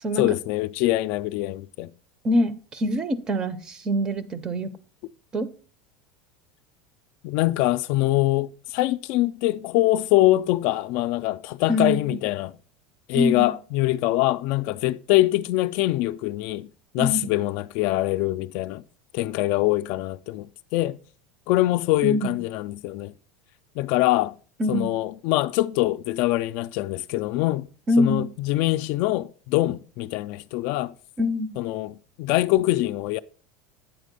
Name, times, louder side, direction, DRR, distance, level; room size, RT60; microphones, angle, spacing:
voice 1, 0.2-1.9 7.2-12.5 13.1-16.7 16.9-18.8 19.1-21.0 21.5-23.1 23.8-24.3 24.7-27.7 28.0-30.9 31.6-33.2, left 17 dB, 55° left, 0.3 m, -24 dB
voice 2, 2.2-4.7 5.3-5.5 11.7-12.2 13.1-13.5 17.0-17.3 22.0-22.4 24.6-25.0 27.9-28.3 31.2-31.6, left 1 dB, 20° right, 0.5 m, -24 dB
8.9 x 4.2 x 5.2 m
supercardioid pair, 155°, 4 cm